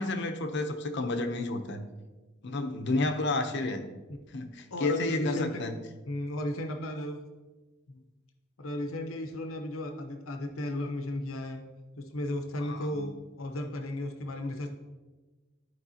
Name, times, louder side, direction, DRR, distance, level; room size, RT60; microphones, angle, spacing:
voice 1, 0.0-1.8 2.4-3.9 4.3-5.8 12.6-13.1, left 2 dB, 60° left, 7 dB, 0.7 m, -31 dB
voice 2, 4.7-5.6 6.1-7.2 7.9-8.0 8.6-11.6 12.1-14.7, left 1 dB, 90° left, 4 dB, 0.9 m, -34 dB
13.5 x 4.7 x 2.8 m, 1.2 s
head